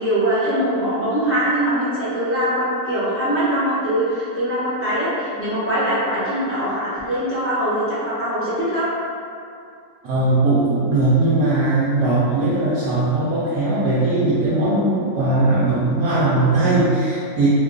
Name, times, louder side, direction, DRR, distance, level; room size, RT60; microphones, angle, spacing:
voice 1, 0.0-8.8, equal, 15° right, -12 dB, 0.6 m, -22 dB
voice 2, 10.0-17.5, right 2 dB, 70° right, -8 dB, 1.0 m, -19 dB
2.9 x 2.2 x 3.7 m, 2.4 s
omnidirectional pair, 1.8 m